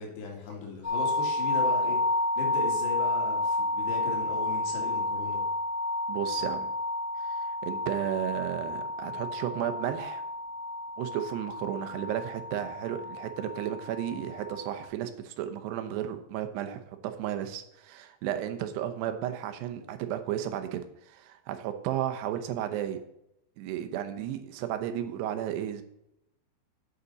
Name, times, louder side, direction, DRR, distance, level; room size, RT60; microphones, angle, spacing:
voice 1, 0.0-2.0 2.4-5.4 11.9-12.0, left 3 dB, 80° left, 0 dB, 4.1 m, -37 dB
sound 1, 0.8-14.9, left 2 dB, 10° left, 0.7 m, -31 dB
voice 2, 6.1-6.7 7.2-10.2 11.0-23.0 23.6-25.8, right 11 dB, 80° right, 7 dB, 2.9 m, -33 dB
8.2 x 8.1 x 4.0 m, 0.80 s
omnidirectional pair, 4.9 m